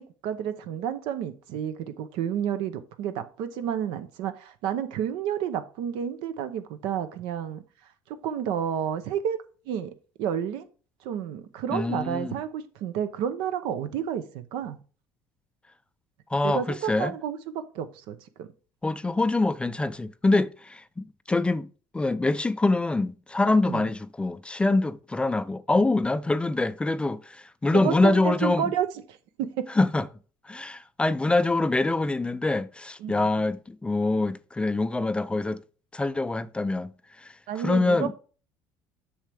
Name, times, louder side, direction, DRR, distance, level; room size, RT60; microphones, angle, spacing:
voice 1, 0.0-7.6 8.1-9.4 9.7-9.9 10.2-10.7 11.0-14.8 16.4-17.4 17.7-18.5 23.7-23.9 27.7-28.9 29.4-29.7 33.0-33.4 37.5-38.1, right 9 dB, 75° right, 0.8 m, -30 dB
voice 2, 11.7-12.3 16.3-17.2 18.8-21.7 21.9-28.7 29.7-30.1 30.4-35.6 35.9-38.1, left 2 dB, 10° left, 0.4 m, -25 dB
7.2 x 6.3 x 3.5 m
supercardioid pair, 95°, 8 cm